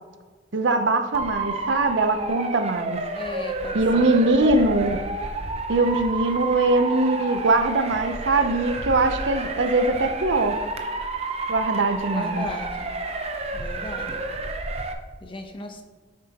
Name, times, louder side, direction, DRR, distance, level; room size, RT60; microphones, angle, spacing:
voice 1, 0.5-3.0 3.7-5.0 5.7-10.6 11.5-12.4, right 2 dB, 80° right, 8 dB, 0.7 m, -22 dB
Motor vehicle (road) / Siren, 1.1-14.9, right 3 dB, 35° right, 0.7 m, -30 dB
voice 2, 3.1-4.7 12.1-13.0 13.5-14.3 15.2-15.8, left 1 dB, 30° left, 4 dB, 0.9 m, -37 dB
9.7 x 7.4 x 2.9 m, 1.4 s
head